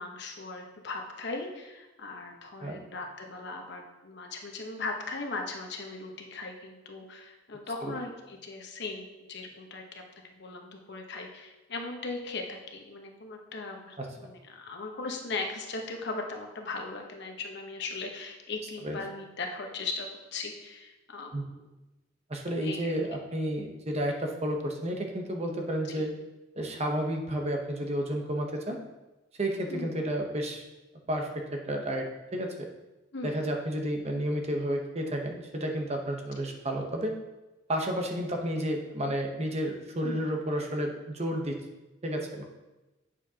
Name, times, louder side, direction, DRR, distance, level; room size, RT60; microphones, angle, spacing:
voice 1, 0.0-9.8 10.3-21.7 22.6-23.2 26.0-26.1 29.7-29.9 33.1-33.4 40.0-40.2, left 3 dB, 60° left, 2 dB, 1.0 m, -38 dB
voice 2, 22.3-26.1 26.5-28.8 29.4-30.6 31.1-32.1 32.3-32.7 33.2-37.1 37.7-41.6 42.0-42.4, right 1 dB, 35° right, 2 dB, 0.9 m, -31 dB
8.5 x 7.2 x 2.9 m, 1.1 s
head